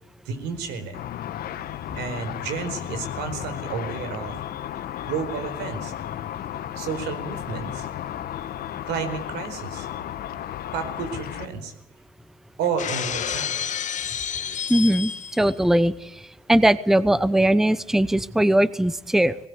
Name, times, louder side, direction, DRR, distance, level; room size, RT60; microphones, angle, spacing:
voice 1, 0.2-1.0 2.0-4.4 5.0-5.9 6.8-7.9 8.8-9.9 10.7-11.7 12.6-13.7, right 6 dB, 85° right, 9 dB, 4.6 m, -31 dB
Car / Traffic noise roadway noise / Engine, 0.9-11.5, left 11 dB, 60° left, 1.3 m, -34 dB
Shatter, 12.8-15.5, left 8 dB, 45° left, 1.5 m, -29 dB
voice 2, 14.7-16.1 16.5-19.4, right 1 dB, ahead, 16 dB, 0.8 m, -20 dB
19.5 x 19.0 x 9.6 m, 0.90 s
cardioid pair, 110°, 17 cm